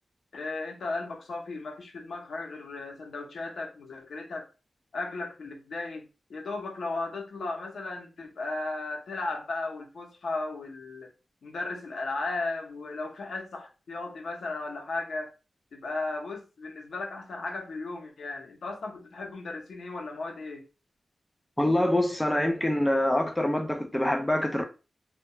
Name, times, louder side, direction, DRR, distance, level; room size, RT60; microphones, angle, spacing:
voice 1, 0.3-4.5 4.9-11.1 11.4-15.3 15.7-20.7, left 3 dB, 85° left, 0.7 m, -35 dB
voice 2, 21.6-24.6, left 1 dB, 5° left, 0.3 m, -25 dB
2.2 x 2.2 x 2.8 m
wide cardioid pair, 175°, 0 cm